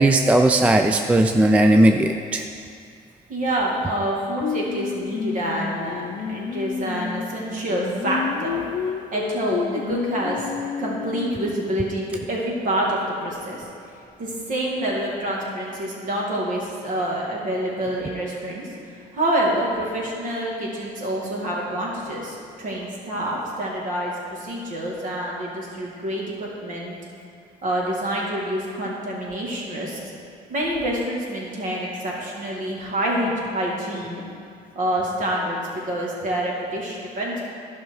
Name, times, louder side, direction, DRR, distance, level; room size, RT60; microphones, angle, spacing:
voice 1, 0.0-2.5, right 1 dB, 10° right, 5 dB, 0.3 m, -17 dB
voice 2, 3.3-6.0 6.3-8.6 9.1-10.4 10.8-13.6 14.2-27.0 27.6-30.0 30.5-34.2 34.7-35.6 35.8-37.4, right 1 dB, 50° right, -3 dB, 2.2 m, -27 dB
Singing, 4.4-11.7, left 6 dB, 50° left, 0.7 m, -30 dB
11.5 x 5.7 x 4.7 m, 2.4 s
cardioid pair, 110°, 17 cm